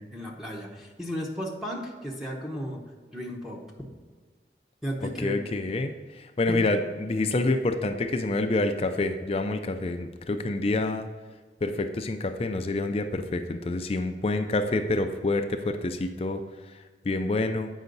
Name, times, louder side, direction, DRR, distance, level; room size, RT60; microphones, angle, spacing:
voice 1, 0.0-2.8 3.1-3.6 4.8-5.4 6.5-6.7, equal, ahead, -2 dB, 0.9 m, -34 dB
voice 2, 5.2-11.1 11.6-16.4 17.1-17.7, left 2 dB, 35° left, 7 dB, 0.4 m, -27 dB
8.1 x 5.6 x 3.9 m, 1.5 s
head